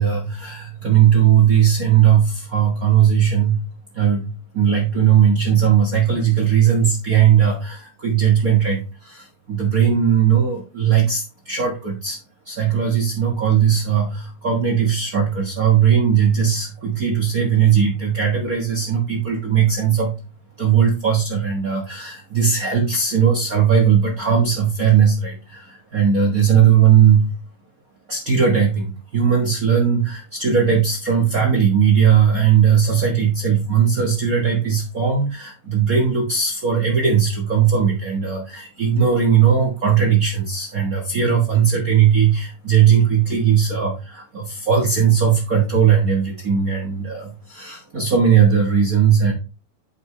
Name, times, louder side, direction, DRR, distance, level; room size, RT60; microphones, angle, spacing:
voice 1, 0.0-3.6 3.9-12.2 12.4-20.2 20.6-27.3 28.1-49.3, right 8 dB, 65° right, -1 dB, 0.8 m, -18 dB
10.5 x 5.6 x 3.2 m, 0.30 s
omnidirectional pair, 4.1 m